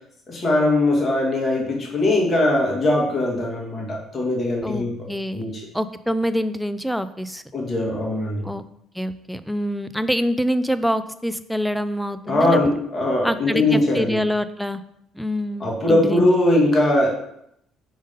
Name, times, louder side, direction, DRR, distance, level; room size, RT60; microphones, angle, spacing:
voice 1, 0.3-5.1 5.3-5.7 7.5-8.5 12.3-14.2 15.6-17.1, left 1 dB, 40° left, -1 dB, 1.9 m, -20 dB
voice 2, 4.6-7.4 8.4-8.6 9.0-12.6 13.2-14.8 15.1-16.3, equal, ahead, 12 dB, 0.5 m, -25 dB
5.0 x 4.0 x 5.3 m, 0.75 s
supercardioid pair, 75°, 0 cm